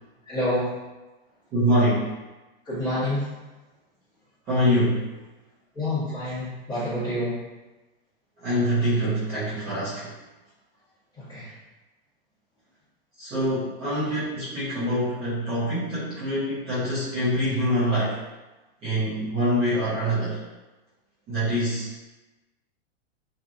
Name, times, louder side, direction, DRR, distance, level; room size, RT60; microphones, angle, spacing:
voice 1, 0.2-0.7 2.6-3.2 5.7-7.4 11.2-11.5, left 1 dB, 15° left, -13 dB, 1.3 m, -28 dB
voice 2, 1.5-2.1 4.5-5.1 8.4-10.1 13.2-18.2 18.8-20.4 21.3-21.9, equal, 20° right, -14 dB, 0.8 m, -25 dB
3.0 x 2.5 x 2.5 m, 1.1 s
supercardioid pair, 175°, 31 cm